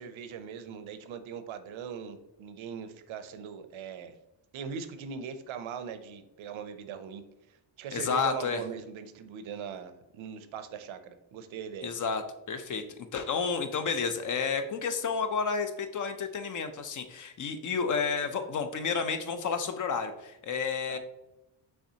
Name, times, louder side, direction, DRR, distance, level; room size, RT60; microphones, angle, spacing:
voice 1, 0.0-4.1 4.5-7.2 7.5-11.9 20.9-21.0, right 6 dB, 75° right, 9 dB, 0.6 m, -40 dB
voice 2, 7.9-8.6 11.8-12.2 12.5-21.0, left 5 dB, 40° left, 8 dB, 0.5 m, -31 dB
5.6 x 3.3 x 2.8 m, 0.91 s
cardioid pair, 100°, 48 cm